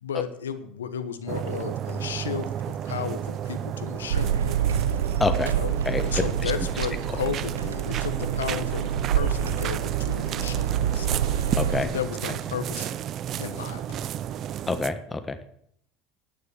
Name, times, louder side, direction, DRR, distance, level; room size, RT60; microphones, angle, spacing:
voice 1, 0.0-4.3 5.4-5.8 6.0-11.1 11.8-13.0 13.4-14.1, left 8 dB, 85° left, 11 dB, 1.2 m, -34 dB
sound 1, 1.3-14.9, right 10 dB, 50° right, 0.6 m, -32 dB
sound 2, 4.1-11.8, right 9 dB, 85° right, 0.8 m, -27 dB
voice 2, 5.2-5.5 5.8-6.5 11.6-11.9 14.7-15.4, left 3 dB, 20° left, 10 dB, 1.3 m, -27 dB
9.9 x 9.7 x 6.7 m, 0.69 s
hypercardioid pair, 75°, 0 cm